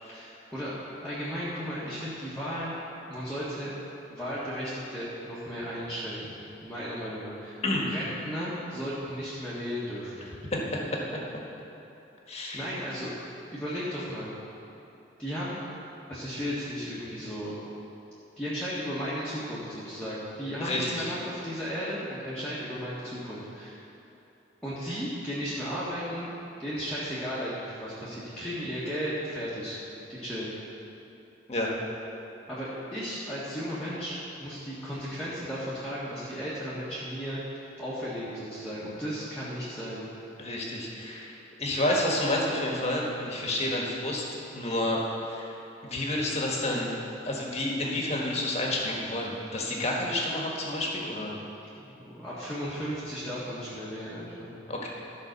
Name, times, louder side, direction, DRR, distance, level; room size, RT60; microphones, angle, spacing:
voice 1, 0.1-2.7 3.1-3.7 4.1-7.6 7.8-10.2 12.5-13.1 13.5-14.3 15.2-15.6 16.1-17.6 18.4-23.8 24.6-26.3 26.6-29.8 30.1-30.5 32.5-40.0 51.8-54.5, equal, 5° left, -11 dB, 1.6 m, -35 dB
voice 2, 12.3-12.7 20.6-21.1 31.5-31.7 40.4-44.2 44.5-45.5 45.8-46.9 47.2-51.4 54.7-54.9, left 1 dB, 35° left, -2 dB, 1.5 m, -30 dB
13.5 x 5.2 x 6.7 m, 2.9 s
head